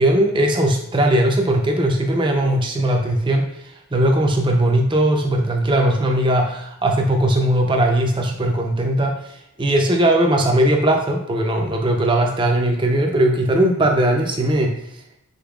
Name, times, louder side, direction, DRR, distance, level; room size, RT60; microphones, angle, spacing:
voice 1, 0.0-3.5 3.9-9.2 9.6-14.7, right 1 dB, 20° right, 2 dB, 0.5 m, -18 dB
5.3 x 3.9 x 2.4 m, 0.77 s
head